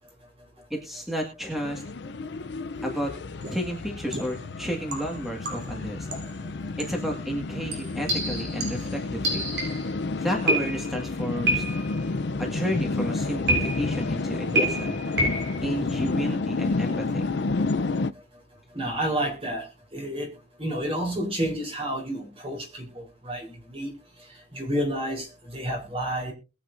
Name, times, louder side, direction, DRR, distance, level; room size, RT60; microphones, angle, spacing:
voice 1, 0.7-1.8 2.8-3.1 3.5-6.1 6.8-9.5 10.2-11.6 12.4-15.0 15.6-17.3, equal, ahead, 1.8 m, -32 dB
sound 1, 1.6-18.1, left 3 dB, 65° left, 0.6 m, -30 dB
sound 2, 3.4-3.7 4.1-4.4 4.9-5.8 6.1-6.4 6.8-7.0 7.7-10.0 10.5-11.0 11.5-12.0 13.5-14.1 14.6-15.6, right 1 dB, 60° right, 7.0 m, -28 dB
voice 2, 18.7-19.6 19.9-20.3 20.6-23.9 24.5-26.3, right 1 dB, 30° right, 3.9 m, -30 dB
21.5 x 8.1 x 2.6 m
head